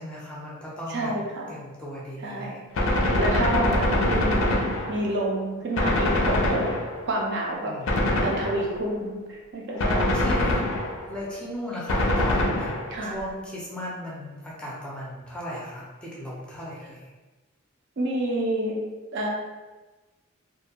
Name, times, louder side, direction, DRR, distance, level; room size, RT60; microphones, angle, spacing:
voice 1, 0.0-1.1 1.5-2.5 7.7-8.3 10.1-10.6 11.1-12.7 13.0-17.0, equal, 5° left, -6 dB, 0.5 m, -36 dB
voice 2, 0.9-1.5 2.2-2.6 3.2-4.6 4.9-6.7 7.1-7.7 8.2-10.1 12.9-13.2 18.0-18.7 19.1-19.3, right 1 dB, 55° right, -2 dB, 0.5 m, -28 dB
Gunshot gunfire, 2.8-5.3 5.8-7.2 7.9-8.9 9.8-11.2 11.9-13.1, left 1 dB, 65° left, 0.4 m, -24 dB
2.5 x 2.2 x 2.8 m, 1.2 s
head